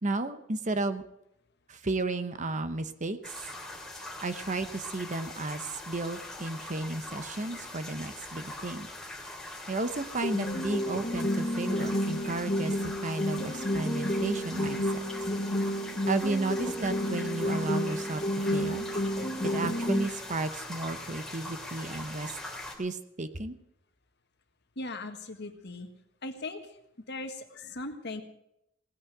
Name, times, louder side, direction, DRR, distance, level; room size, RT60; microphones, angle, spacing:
voice 1, 0.0-1.0 1.7-3.3 4.2-8.9 9.7-15.0 16.1-18.9 19.4-22.3 22.8-23.6, right 2 dB, 35° right, 10 dB, 0.9 m, -33 dB
sound 1, 3.2-22.8, left 1 dB, 5° left, 3.1 m, -42 dB
sound 2, 10.2-20.2, equal, 30° left, 1.2 m, -31 dB
voice 2, 24.7-25.9 26.2-26.8 27.1-28.2, left 2 dB, 55° left, 6 dB, 1.6 m, -39 dB
17.5 x 9.7 x 7.8 m, 0.82 s
head